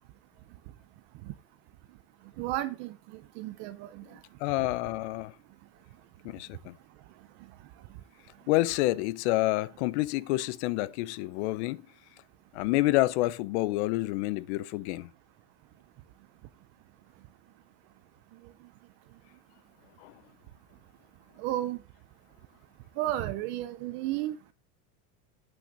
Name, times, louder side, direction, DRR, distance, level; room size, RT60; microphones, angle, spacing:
voice 1, 2.4-2.9 3.4-4.0 21.4-21.8 23.0-24.4, right 14 dB, 30° right, 0.3 m, -32 dB
voice 2, 4.4-5.3 6.2-6.7 8.5-11.8 12.5-15.1 20.0-20.1, left 18 dB, 50° left, 0.5 m, -28 dB
8.9 x 5.9 x 5.1 m
supercardioid pair, 160°, 44 cm